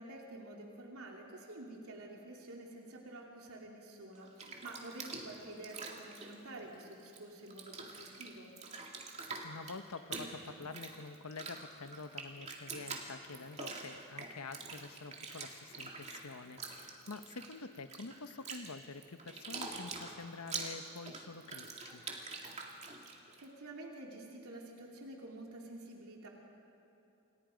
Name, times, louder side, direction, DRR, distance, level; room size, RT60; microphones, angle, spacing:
voice 1, 0.0-8.5 23.4-26.3, right 2 dB, 85° right, -1 dB, 3.0 m, -49 dB
Bathtub (filling or washing), 4.1-7.2 7.5-23.4, right 4 dB, 30° right, 2.4 m, -46 dB
voice 2, 9.3-22.0, left 4 dB, 90° left, 10 dB, 1.0 m, -47 dB
28.5 x 28.5 x 5.2 m, 3.0 s
head